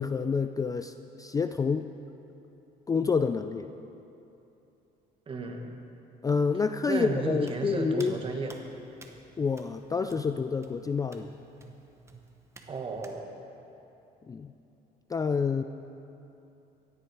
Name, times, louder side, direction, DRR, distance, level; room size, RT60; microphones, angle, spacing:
voice 1, 0.0-1.9 2.9-3.7 6.2-8.2 9.4-11.3 14.3-14.5 15.1-15.6, left 5 dB, 20° left, 9 dB, 0.4 m, -28 dB
voice 2, 5.3-5.8 6.9-8.6 12.7-13.4, right 3 dB, 30° right, 3 dB, 1.6 m, -33 dB
Hands, 7.4-13.2, right 2 dB, 15° right, 1.2 m, -53 dB
16.5 x 11.0 x 4.8 m, 2.9 s
cardioid pair, 110°, 17 cm